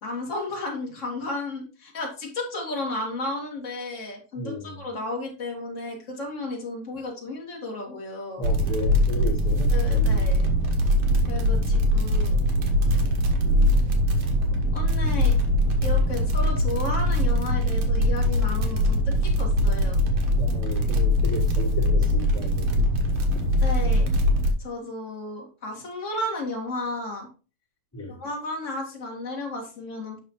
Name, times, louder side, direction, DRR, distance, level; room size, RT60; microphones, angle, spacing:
voice 1, 0.0-8.4 9.7-10.5 11.3-12.4 14.7-15.4 15.8-20.0 23.6-24.1 24.6-27.3 28.2-30.2, left 2 dB, 30° left, -1 dB, 1.4 m, -33 dB
voice 2, 4.3-4.8 8.4-10.3 11.6-11.7 13.4-13.8 20.3-22.9 27.9-28.2, equal, 5° left, -8 dB, 4.2 m, -34 dB
sound 1, 8.4-24.5, equal, 70° right, 1.5 m, -22 dB
8.3 x 6.0 x 3.1 m, 0.34 s
omnidirectional pair, 4.6 m